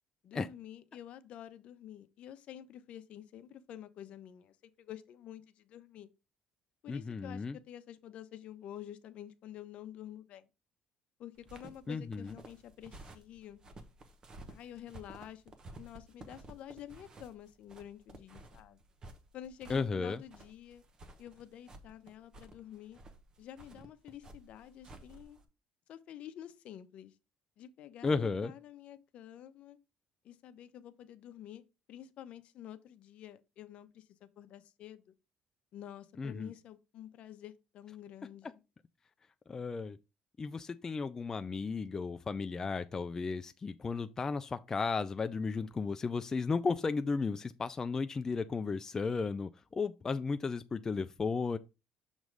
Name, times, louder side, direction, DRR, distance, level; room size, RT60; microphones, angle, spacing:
voice 1, 0.2-6.1 6.8-10.5 11.2-13.6 14.5-15.4 15.7-18.8 19.3-20.8 21.2-23.0 23.4-25.4 25.9-27.1 27.6-29.8 30.2-31.6 31.9-35.1 35.7-38.6, left 11 dB, 60° left, 0.7 m, -49 dB
voice 2, 6.9-7.6 11.9-12.3 19.7-20.2 28.0-28.5 36.2-36.5 39.5-40.0 40.4-51.6, left 4 dB, 25° left, 0.3 m, -34 dB
sound 1, 11.4-25.5, right 2 dB, 35° right, 1.0 m, -53 dB
6.2 x 3.1 x 5.1 m
cardioid pair, 120°, 2 cm